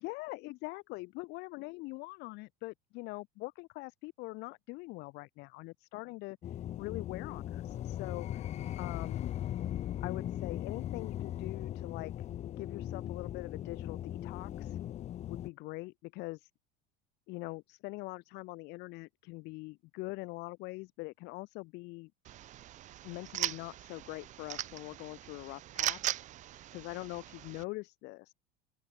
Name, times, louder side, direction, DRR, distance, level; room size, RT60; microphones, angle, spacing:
voice 1, 0.0-6.4 6.8-8.5 8.8-9.2 10.0-12.1 12.6-14.8 15.3-16.5 17.3-22.1 23.0-26.2 26.7-28.3, left 23 dB, 55° left, 2.8 m, -43 dB
sound 1, 6.4-15.5, left 12 dB, 30° left, 2.2 m, -38 dB
sound 2, 22.2-27.6, right 13 dB, 35° right, 2.2 m, -39 dB
open air
cardioid pair, 165°, 21 cm